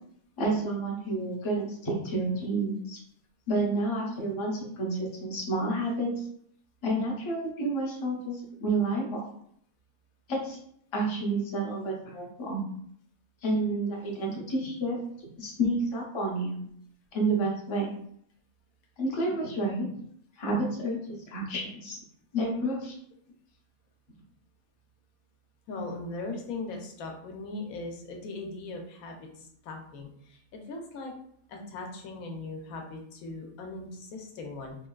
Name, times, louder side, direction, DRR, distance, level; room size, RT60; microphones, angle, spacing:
voice 1, 0.4-3.0 3.5-6.1 6.8-9.2 10.3-10.6 10.9-12.6 13.4-15.0 15.4-16.6 17.1-17.9 19.0-19.9 20.4-22.0 22.3-22.9, right 2 dB, 35° left, -2 dB, 0.5 m, -30 dB
voice 2, 25.7-31.1 31.5-34.8, left 3 dB, 90° left, 2 dB, 1.1 m, -39 dB
3.3 x 2.3 x 2.2 m, 0.66 s
omnidirectional pair, 1.5 m